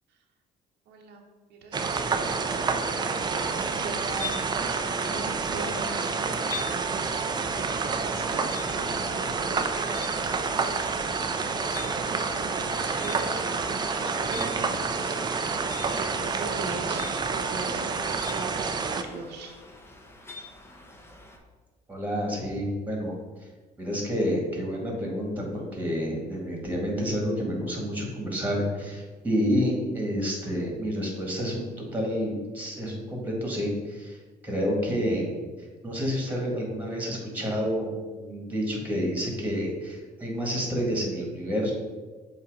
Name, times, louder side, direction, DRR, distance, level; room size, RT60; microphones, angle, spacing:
voice 1, 0.9-6.2 8.0-9.8 10.5-11.7 12.2-15.6 15.9-18.0 18.3-18.7 18.9-19.5, right 3 dB, 80° right, 1 dB, 0.9 m, -41 dB
sound 1, 1.7-19.0, right 4 dB, 25° right, 0.5 m, -28 dB
sound 2, 3.4-21.4, left 4 dB, 15° left, 0.9 m, -44 dB
voice 2, 21.9-23.2 23.8-34.2 34.4-35.3 35.8-41.7, equal, 10° right, -1 dB, 1.8 m, -29 dB
7.3 x 2.9 x 4.9 m, 1.4 s
cardioid pair, 110°, 17 cm